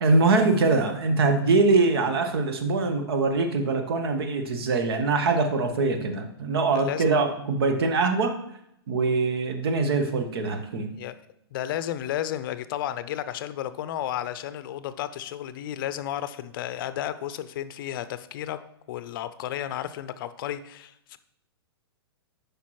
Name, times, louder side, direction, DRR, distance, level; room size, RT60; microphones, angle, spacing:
voice 1, 0.0-8.4 8.9-10.9, right 3 dB, 70° right, 7 dB, 1.1 m, -23 dB
voice 2, 6.7-7.2 10.9-11.2 11.5-18.6 18.9-21.2, left 11 dB, 55° left, 13 dB, 0.5 m, -33 dB
8.3 x 5.2 x 3.1 m, 0.78 s
hypercardioid pair, 115°, 13 cm